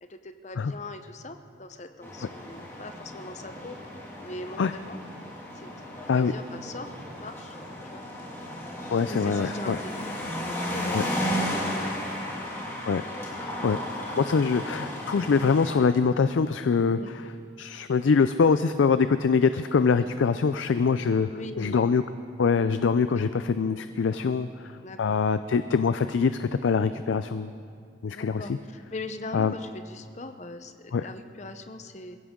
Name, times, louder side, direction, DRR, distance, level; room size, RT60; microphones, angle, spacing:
voice 1, 0.0-5.0 5.5-5.7 6.1-7.6 7.8-8.0 9.1-11.9 12.4-12.5 13.5-13.7 16.9-17.1 21.3-21.8 23.2-23.3 24.8-25.2 28.1-32.2, left 2 dB, 35° left, 8 dB, 0.7 m, -41 dB
sound 1, 2.0-15.7, equal, 15° left, 2.3 m, -34 dB
voice 2, 8.9-9.8 10.9-11.0 12.8-13.0 13.4-13.8 14.2-17.3 17.6-21.3 21.6-22.0 22.4-24.7 25.0-27.5 28.0-28.4 29.3-29.5 30.9-31.1, left 5 dB, 80° left, 11 dB, 0.4 m, -24 dB
22.0 x 16.0 x 3.7 m, 2.2 s
head